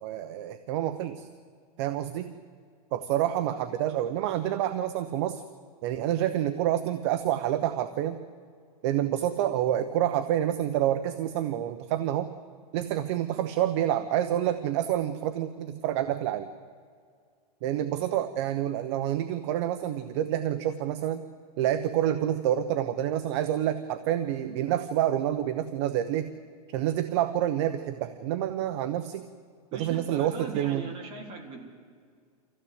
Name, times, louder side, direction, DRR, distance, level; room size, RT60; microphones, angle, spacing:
voice 1, 0.0-1.3 1.8-2.3 2.9-5.4 5.8-8.2 8.8-12.3 12.7-16.5 17.6-21.2 21.6-26.3 26.7-29.2 29.7-30.9, right 11 dB, 45° right, 11 dB, 1.0 m, -28 dB
voice 2, 29.7-31.7, right 4 dB, 30° right, 2 dB, 3.6 m, -40 dB
25.5 x 15.5 x 8.2 m, 2.1 s
supercardioid pair, 155°, 19 cm